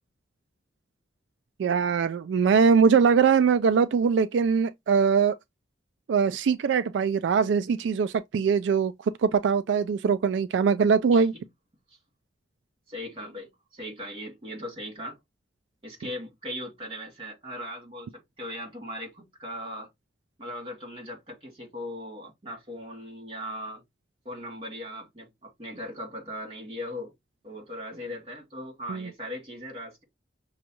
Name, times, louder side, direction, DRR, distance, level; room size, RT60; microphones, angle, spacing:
voice 1, 1.6-5.4 6.1-11.3 28.9-29.1, right 6 dB, 85° right, 0.3 m, -22 dB
voice 2, 12.9-15.2 15.8-19.9 20.4-23.8 24.2-27.1 27.4-30.0, equal, 30° right, 2.4 m, -39 dB
6.1 x 2.3 x 2.9 m
head